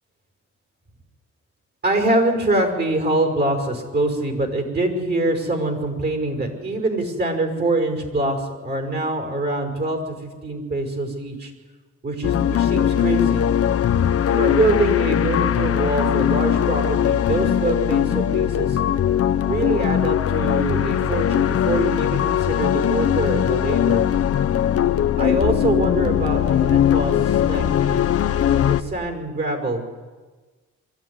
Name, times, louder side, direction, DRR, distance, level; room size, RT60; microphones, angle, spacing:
voice 1, 1.8-11.5 12.0-13.4 14.3-18.8 19.5-24.0 25.2-28.1 28.6-29.8, right 2 dB, 35° right, 5 dB, 5.7 m, -24 dB
sound 1, 12.2-28.8, left 10 dB, 50° left, 0.9 m, -20 dB
23.5 x 13.5 x 9.8 m, 1.4 s
cardioid pair, 90°, 30 cm